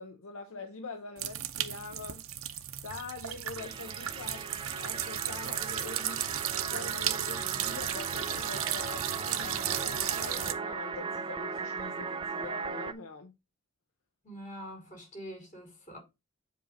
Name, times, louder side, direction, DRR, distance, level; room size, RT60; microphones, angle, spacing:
voice 1, 0.0-2.2 2.8-13.4, left 4 dB, 65° left, 0.7 m, -44 dB
sound 1, 1.2-10.5, right 11 dB, 70° right, 0.6 m, -35 dB
sound 2, 3.6-12.9, right 5 dB, 25° right, 0.4 m, -38 dB
voice 2, 14.2-16.0, equal, 40° left, 4.8 m, -44 dB
7.5 x 2.8 x 5.1 m
head